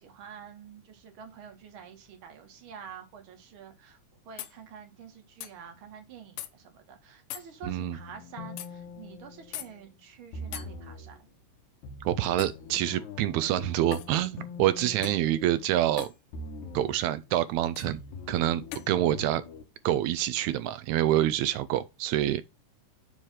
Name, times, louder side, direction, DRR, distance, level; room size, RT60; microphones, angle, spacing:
voice 1, 0.0-4.0 4.3-11.3, right 8 dB, 50° right, 1.8 m, -48 dB
sound 1, 4.4-4.6 5.4-5.5 6.4-6.5 7.3-7.5 8.6-8.7 9.5-9.7 10.5-10.7 12.4-12.6 13.9-14.1 15.0-15.3 16.0-16.2 17.8-17.9 18.7-18.9, left 12 dB, 90° left, 2.3 m, -39 dB
sound 2, 7.6-9.9 10.3-11.2 11.8-16.0 16.3-17.2 17.8-19.6, left 3 dB, 70° left, 2.3 m, -43 dB
voice 2, 12.0-16.1 16.7-18.0 18.3-19.4 19.9-22.4, right 13 dB, 80° right, 1.7 m, -27 dB
7.4 x 3.2 x 5.6 m
omnidirectional pair, 3.6 m